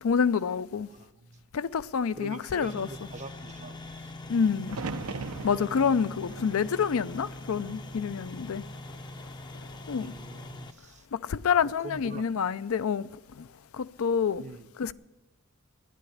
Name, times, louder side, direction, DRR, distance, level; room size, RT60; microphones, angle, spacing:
voice 1, 0.0-0.9 1.5-2.9 4.3-4.8 5.4-8.6 9.9-10.1 11.1-13.1 13.4-13.5 13.7-14.4 14.8-14.9, left 6 dB, 70° left, 0.4 m, -27 dB
voice 2, 0.9-1.5 2.2-4.1 10.0-11.1 11.7-12.4 14.4-14.7, right 3 dB, 30° right, 0.6 m, -44 dB
sound 1, 2.6-10.7, left 1 dB, 20° left, 0.5 m, -43 dB
sound 2, 4.7-8.7 9.1-9.8 11.7-12.2, right 4 dB, 75° right, 0.7 m, -41 dB
12.0 x 10.0 x 10.0 m
head